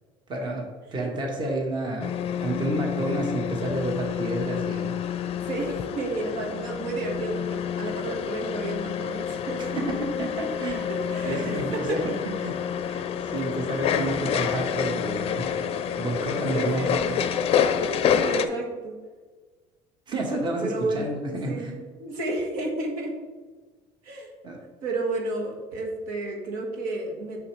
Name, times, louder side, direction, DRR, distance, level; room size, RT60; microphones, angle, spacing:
voice 1, 0.3-2.1 2.4-5.0 9.6-10.9 11.2-12.0 12.4-12.5 12.8-15.6 16.0-17.0 20.1-21.7 24.4-24.6, right 1 dB, 35° right, 1 dB, 1.4 m, -30 dB
sound 1, 2.0-18.5, left 8 dB, 45° left, 0.5 m, -28 dB
voice 2, 5.4-9.6 10.9-12.0 16.5-17.2 18.2-18.9 20.6-23.1 24.0-24.3 24.8-27.4, right 2 dB, 80° right, 0 dB, 1.5 m, -31 dB
6.8 x 6.0 x 3.2 m, 1.4 s
cardioid pair, 120°, 14 cm